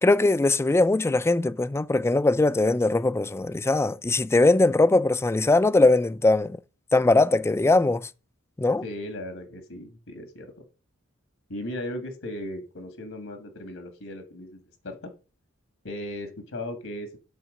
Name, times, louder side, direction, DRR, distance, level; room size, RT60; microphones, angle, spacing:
voice 1, 0.0-6.6 6.9-8.1 8.6-8.8, left 2 dB, 15° left, 0.3 m, -21 dB
voice 2, 8.8-10.6 11.5-15.1 15.8-17.2, left 1 dB, 80° left, 1.7 m, -37 dB
8.8 x 4.0 x 6.4 m
head